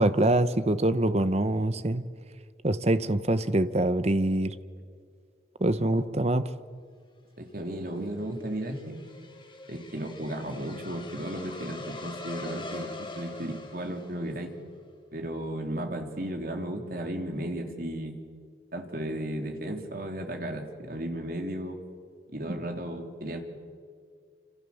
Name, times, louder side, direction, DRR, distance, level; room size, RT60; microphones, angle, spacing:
voice 1, 0.0-2.0 2.6-4.5 5.6-6.4 22.5-22.6, right 1 dB, 35° right, 13 dB, 1.0 m, -24 dB
voice 2, 7.4-9.0 9.7-14.5 15.1-18.1 18.7-21.8 22.3-23.4, right 1 dB, 50° right, 4 dB, 3.3 m, -34 dB
sound 1, 7.5-14.6, left 2 dB, 25° left, 4.2 m, -43 dB
28.0 x 27.0 x 7.1 m, 2.1 s
head